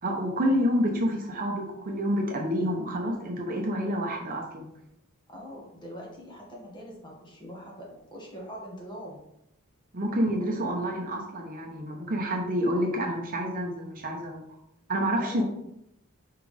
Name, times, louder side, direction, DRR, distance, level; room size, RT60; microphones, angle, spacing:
voice 1, 0.0-4.7 9.9-14.5 14.9-15.4, equal, 40° right, 1 dB, 0.9 m, -28 dB
voice 2, 5.3-9.2 15.2-15.4, equal, 20° left, -4 dB, 1.8 m, -42 dB
5.9 x 4.8 x 3.4 m, 0.83 s
head